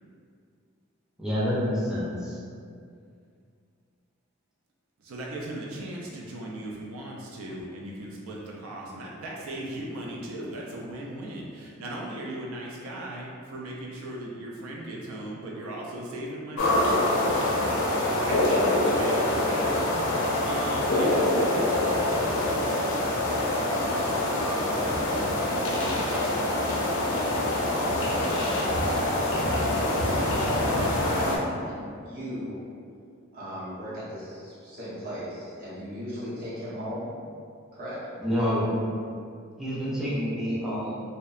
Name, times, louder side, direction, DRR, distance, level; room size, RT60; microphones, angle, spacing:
voice 1, 1.2-2.4 38.2-38.7 39.6-41.0, equal, 5° right, -10 dB, 0.4 m, -28 dB
voice 2, 5.0-22.8, right 1 dB, 85° right, -3 dB, 0.4 m, -38 dB
sound 1, 16.6-31.4, left 1 dB, 85° left, 0.4 m, -25 dB
voice 3, 25.1-26.8 27.1-32.6 33.3-37.1 37.7-38.1, equal, 45° right, -9 dB, 0.8 m, -38 dB
2.6 x 2.1 x 2.4 m, 2.3 s
head